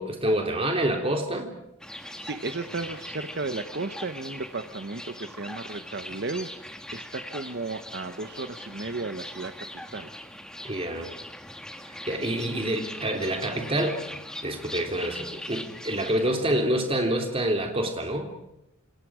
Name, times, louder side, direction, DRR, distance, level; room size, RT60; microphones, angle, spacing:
voice 1, 0.0-1.5 10.6-11.1 12.1-14.0 14.4-18.3, right 1 dB, 25° right, 3 dB, 3.4 m, -27 dB
sound 1, 1.8-16.4, left 1 dB, 5° left, 1.6 m, -41 dB
voice 2, 2.2-10.1, right 3 dB, 50° right, 8 dB, 1.0 m, -34 dB
28.0 x 27.5 x 5.0 m, 0.83 s
head